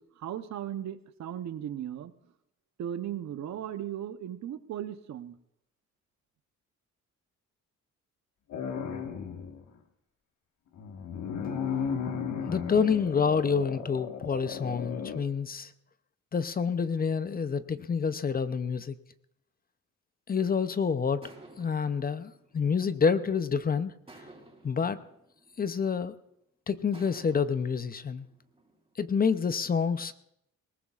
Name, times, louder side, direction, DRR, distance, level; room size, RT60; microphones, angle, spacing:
voice 1, 0.0-2.1 2.8-5.4, right 10 dB, 65° right, 11 dB, 0.9 m, -37 dB
sound 1, 8.5-9.6 10.8-15.2, left 6 dB, 70° left, 1.6 m, -35 dB
voice 2, 12.5-15.7 16.3-19.0 20.3-21.2 21.6-23.9 24.6-25.0 25.6-26.1 26.7-28.3 29.0-30.1, left 6 dB, 30° left, 13 dB, 0.6 m, -28 dB
sound 2, 21.2-23.5 24.1-26.2 26.9-29.2, right 2 dB, 20° right, 3.9 m, -55 dB
20.5 x 18.5 x 2.4 m, 0.77 s
cardioid pair, 90°, 30 cm